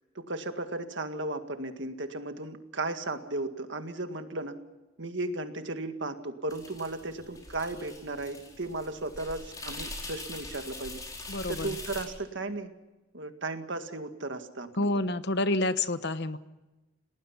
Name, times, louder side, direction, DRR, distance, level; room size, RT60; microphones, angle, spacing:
voice 1, 0.2-4.6 5.0-11.0 11.5-12.7 13.1-14.9, right 2 dB, 55° right, 7 dB, 1.9 m, -35 dB
sound 1, 6.5-12.1, left 2 dB, 15° left, 4.8 m, -42 dB
voice 2, 11.3-11.7 14.8-16.4, left 2 dB, 55° left, 12 dB, 1.1 m, -28 dB
29.5 x 19.0 x 5.7 m, 1.1 s
head